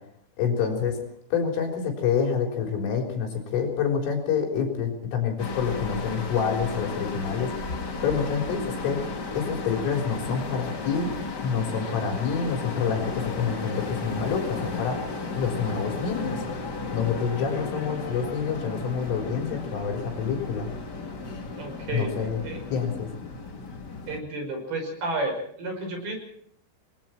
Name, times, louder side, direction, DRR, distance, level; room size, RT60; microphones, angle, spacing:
voice 1, 0.4-1.0 1.3-7.5 8.0-9.0 9.3-11.1 11.4-15.0 15.3-16.4 16.9-20.7 21.9-22.4 22.7-23.1, left 6 dB, 80° left, 2 dB, 6.5 m, -27 dB
sound 1, 5.4-24.2, left 3 dB, 50° left, 1.1 m, -34 dB
voice 2, 21.6-22.1 22.4-22.6 24.1-26.1, right 2 dB, 50° right, 3 dB, 7.4 m, -31 dB
29.0 x 20.5 x 4.5 m, 0.66 s
omnidirectional pair, 5.6 m